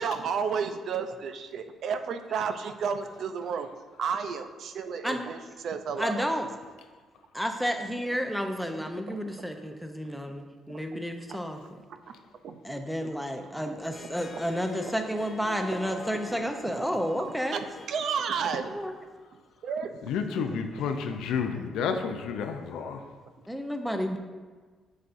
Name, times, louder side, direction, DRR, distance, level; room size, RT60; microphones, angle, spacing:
voice 1, 0.0-3.7 4.0-6.3 9.1-9.3 10.7-11.0 12.4-13.1 13.7-13.8 14.6-14.7 15.9-16.0 16.3-16.4 16.8-18.8 19.6-20.2, right 6 dB, 65° right, 8 dB, 0.5 m, -33 dB
voice 2, 6.0-6.5 7.3-11.6 12.6-17.6 18.7-18.9 23.5-24.2, equal, ahead, 5 dB, 0.7 m, -31 dB
Harp, 13.8-19.2, left 3 dB, 35° left, 0.8 m, -45 dB
voice 3, 20.1-23.0, left 6 dB, 85° left, 6 dB, 0.5 m, -30 dB
7.9 x 5.4 x 2.6 m, 1.4 s
cardioid pair, 90°, 0 cm